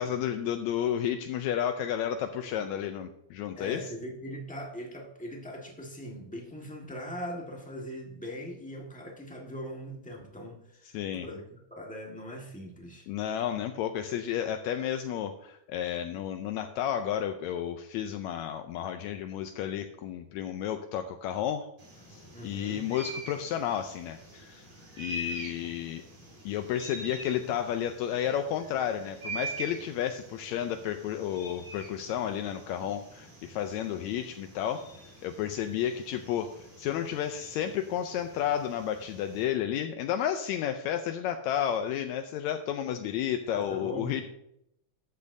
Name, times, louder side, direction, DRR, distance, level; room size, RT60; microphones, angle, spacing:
voice 1, 0.0-3.9 10.9-11.3 13.1-21.7 22.1-24.6 25.0-26.0 26.5-44.2, left 10 dB, 80° left, 7 dB, 1.8 m, -32 dB
voice 2, 3.6-11.4 11.7-13.1 22.3-22.9 43.5-44.2, equal, 10° left, -1 dB, 0.4 m, -41 dB
sound 1, 21.8-39.4, right 1 dB, 65° right, 5.9 m, -45 dB
13.5 x 8.6 x 2.7 m, 0.78 s
omnidirectional pair, 3.4 m